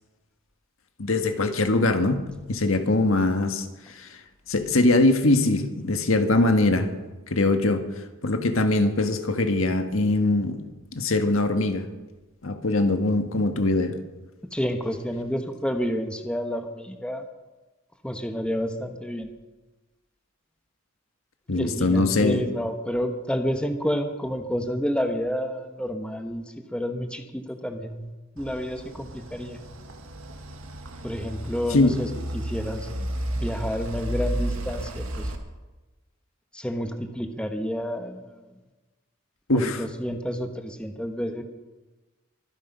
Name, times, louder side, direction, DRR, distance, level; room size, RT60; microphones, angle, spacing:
voice 1, 1.0-3.6 3.9-4.1 4.5-6.9 7.3-7.8 8.2-10.6 10.9-11.9 12.4-14.0 21.5-22.4 31.7-31.9 39.5-39.8, left 2 dB, 80° left, 6 dB, 1.6 m, -22 dB
voice 2, 14.5-17.3 18.0-19.3 21.5-26.4 26.7-29.6 31.0-32.9 33.3-35.3 36.5-38.3 39.5-41.4, equal, 5° left, 5 dB, 1.2 m, -30 dB
sound 1, 28.4-35.4, right 1 dB, 80° right, 1.9 m, -33 dB
23.5 x 10.0 x 5.5 m, 1.2 s
head